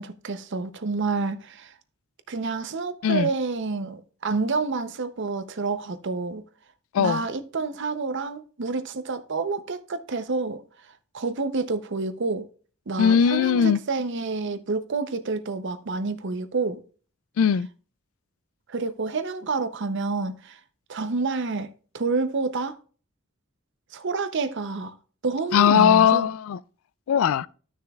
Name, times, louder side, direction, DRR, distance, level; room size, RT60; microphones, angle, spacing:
voice 1, 0.0-1.7 2.3-6.4 7.0-10.6 11.1-12.5 12.9-16.8 18.7-20.6 20.9-22.8 23.9-24.9 25.2-26.3, right 4 dB, 55° right, 0.6 m, -28 dB
voice 2, 13.0-13.8 17.4-17.7 25.5-26.6 27.1-27.5, left 8 dB, 75° left, 0.3 m, -19 dB
13.0 x 6.3 x 2.3 m
head